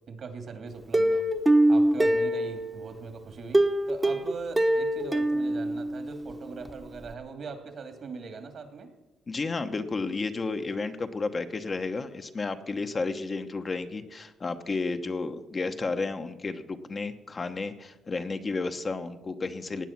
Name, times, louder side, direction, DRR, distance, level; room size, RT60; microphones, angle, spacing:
voice 1, 0.1-1.2 1.7-8.9, right 4 dB, 55° right, 7 dB, 2.4 m, -41 dB
Plucked string instrument, 0.9-2.9 3.5-6.3 6.7-6.8 7.1-7.2, right 1 dB, 15° right, 1.1 m, -24 dB
voice 2, 9.3-19.9, left 3 dB, 35° left, 7 dB, 1.0 m, -32 dB
16.5 x 9.2 x 6.0 m, 1.0 s
cardioid pair, 90°, 0 cm